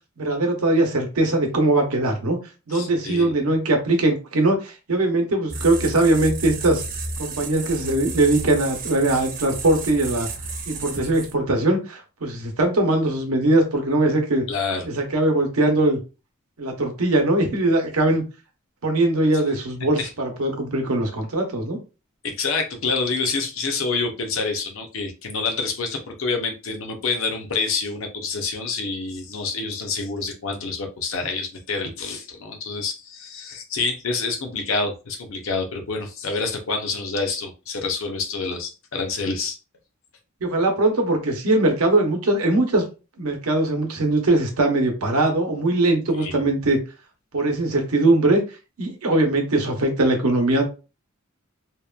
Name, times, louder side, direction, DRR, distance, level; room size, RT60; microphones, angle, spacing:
voice 1, 0.2-2.4 2.7-6.8 7.2-10.3 10.7-14.4 14.9-16.0 16.6-18.2 18.8-21.8 40.4-42.8 43.2-46.8 47.3-48.4 48.8-50.7, right 2 dB, 85° right, 0.8 m, -21 dB
voice 2, 2.7-3.3 14.5-14.9 19.3-19.4 20.0-20.1 22.2-39.6 46.2-46.4, left 4 dB, 65° left, 0.6 m, -27 dB
sound 1, 5.5-11.5, right 3 dB, 40° right, 0.4 m, -32 dB
2.9 x 2.1 x 2.3 m
head